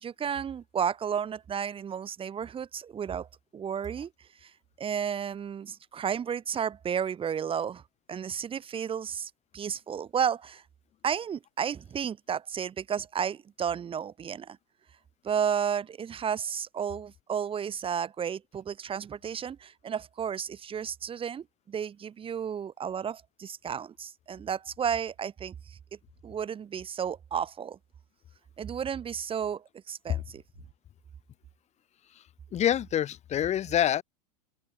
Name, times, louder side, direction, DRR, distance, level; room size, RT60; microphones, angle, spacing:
voice 1, 0.0-3.3 3.5-4.1 4.4-4.5 4.8-7.8 8.1-10.6 11.0-14.6 15.2-25.5 26.2-27.8 28.6-30.4, right 8 dB, 30° right, 4.6 m, -32 dB
voice 2, 32.5-34.0, left 10 dB, 35° left, 5.8 m, -26 dB
open air
hypercardioid pair, 90°, 19 cm